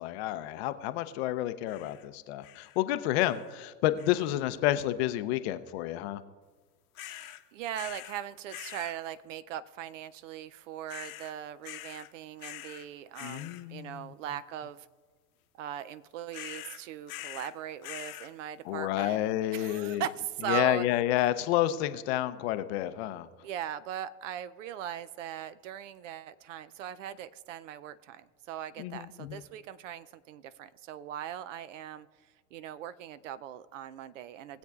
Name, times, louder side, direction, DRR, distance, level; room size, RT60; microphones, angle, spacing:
voice 1, 0.0-6.2 13.2-14.1 18.6-20.0 20.5-23.3 28.8-29.4, left 13 dB, 40° left, 12 dB, 0.6 m, -30 dB
sound 1, 1.7-2.1 2.4-2.8 3.2-3.6 4.0-4.4 6.9-7.4 7.7-8.2 8.5-9.0 10.9-11.3 11.6-12.1 12.4-12.9 13.1-13.6 16.3-17.5 17.8-18.3, left 15 dB, 55° left, 0.9 m, -44 dB
voice 2, 7.0-14.9 15.6-19.2 19.5-20.9 23.4-32.1 32.5-34.6, right 10 dB, 50° right, 16 dB, 0.5 m, -39 dB
19.0 x 8.1 x 2.4 m, 1.5 s
hypercardioid pair, 110°, 50 cm